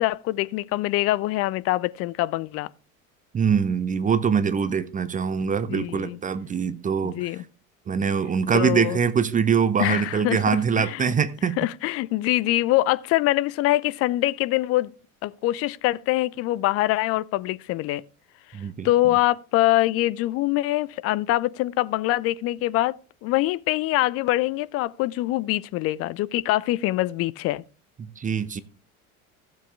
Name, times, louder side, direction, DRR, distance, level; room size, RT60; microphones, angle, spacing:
voice 1, 0.0-2.7 5.7-6.2 7.0-7.4 8.5-9.0 9.8-11.1 11.6-14.9 15.2-18.0 18.8-22.9 23.2-27.6, left 17 dB, 35° left, 0.4 m, -24 dB
voice 2, 3.3-7.3 7.9-11.6 18.5-18.9 28.0-28.6, right 6 dB, 20° right, 0.6 m, -23 dB
15.0 x 7.2 x 3.4 m
figure-of-eight pair, 65°, 42 cm